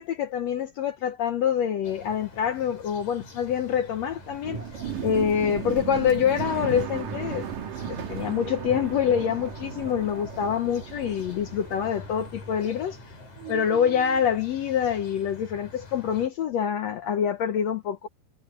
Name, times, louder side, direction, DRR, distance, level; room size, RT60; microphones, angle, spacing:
voice 1, 0.0-4.6 5.0-7.5 7.9-13.0 13.5-18.1, left 8 dB, 75° left, 1.6 m, -26 dB
sound 1, 1.8-16.3, left 3 dB, 55° left, 6.4 m, -45 dB
sound 2, 3.0-13.1 13.4-14.2, right 8 dB, 65° right, 2.9 m, -36 dB
omnidirectional pair, 4.1 m